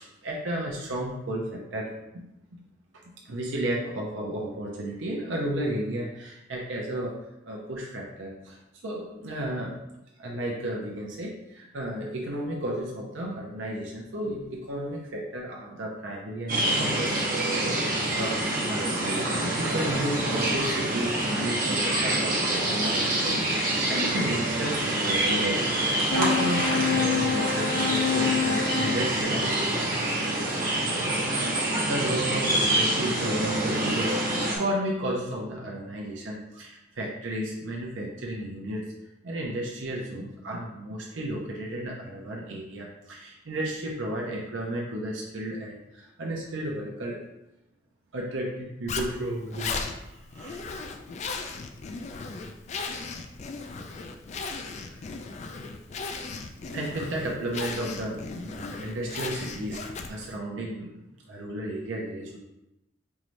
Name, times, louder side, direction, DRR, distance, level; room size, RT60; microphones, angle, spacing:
voice 1, 0.0-1.9 2.1-2.2 2.5-2.6 2.9-7.2 7.5-8.6 8.8-9.8 10.2-29.8 31.5-38.8 39.2-47.2 48.1-49.7 50.1-50.7 53.7-53.9 54.6-55.1 56.7-59.8 60.1-62.4, right 1 dB, 75° right, -2 dB, 0.6 m, -33 dB
sound 1, 16.5-34.6, right 1 dB, 50° right, 1.1 m, -26 dB
sound 2, 26.1-29.0, left 6 dB, 85° left, 0.6 m, -26 dB
Zipper (clothing), 48.9-60.4, left 4 dB, 35° left, 0.3 m, -36 dB
4.6 x 3.1 x 2.6 m, 0.91 s
head